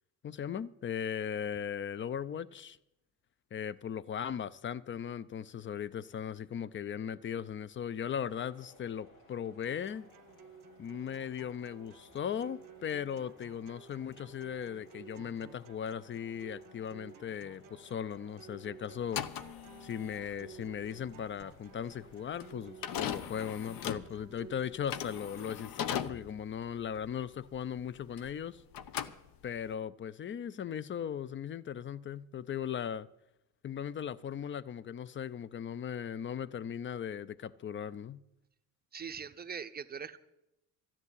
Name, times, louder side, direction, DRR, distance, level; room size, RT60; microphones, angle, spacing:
voice 1, 0.2-2.8 3.5-10.1 10.8-19.3 19.8-28.6 29.4-33.1 33.6-38.2, left 8 dB, 25° left, 0.5 m, -38 dB
sound 1, 8.0-23.3, left 2 dB, 75° left, 5.1 m, -61 dB
sound 2, 9.6-25.6, right 6 dB, 45° right, 1.1 m, -55 dB
sound 3, 19.0-28.4 28.7-29.7, left 9 dB, 45° left, 0.9 m, -40 dB
voice 2, 38.9-40.2, right 7 dB, 20° right, 0.8 m, -41 dB
13.0 x 7.4 x 9.6 m
hypercardioid pair, 65°, 48 cm